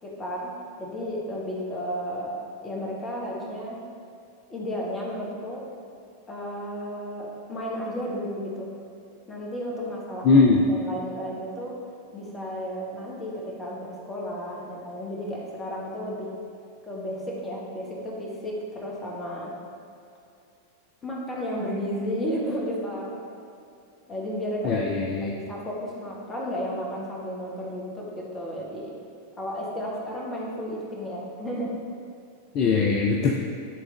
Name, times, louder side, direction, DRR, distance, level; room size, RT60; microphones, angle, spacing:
voice 1, 0.0-3.8 4.5-5.6 6.3-8.7 9.3-10.3 10.7-11.8 12.1-16.3 16.8-19.5 21.0-23.2 24.1-24.8 25.2-29.0 29.4-31.8, equal, 20° left, -3 dB, 1.5 m, -33 dB
voice 2, 10.2-10.6 24.6-25.3 32.5-33.4, left 4 dB, 35° left, 0 dB, 0.5 m, -20 dB
10.5 x 3.6 x 3.9 m, 2.5 s
figure-of-eight pair, 90°, 0 cm